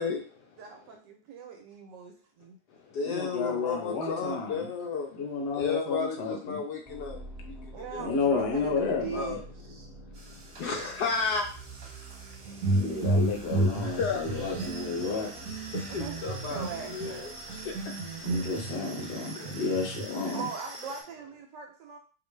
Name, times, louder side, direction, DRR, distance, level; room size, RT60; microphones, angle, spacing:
voice 1, 0.0-0.6 2.7-5.2 5.5-8.2 8.5-9.4 10.6-11.5 13.8-14.6 15.0-15.3 15.7-17.9 19.4-19.6, left 5 dB, 80° left, 2 dB, 0.9 m, -34 dB
voice 2, 0.6-2.6 7.7-9.4 9.7-9.9 12.3-12.7 15.9-17.3 20.3-22.0, right 6 dB, 70° right, 3 dB, 1.1 m, -41 dB
voice 3, 3.0-4.7 5.1-6.6 8.0-9.4 12.6-15.5 18.2-20.5, left 4 dB, 50° left, 1 dB, 0.7 m, -32 dB
sound 1, 6.8-18.7, right 2 dB, ahead, 0.6 m, -48 dB
sound 2, 10.1-21.0, right 2 dB, 45° right, 1.0 m, -46 dB
sound 3, 12.5-17.2 17.5-20.1, right 2 dB, 90° right, 1.4 m, -31 dB
4.3 x 2.6 x 3.2 m, 0.41 s
omnidirectional pair, 2.3 m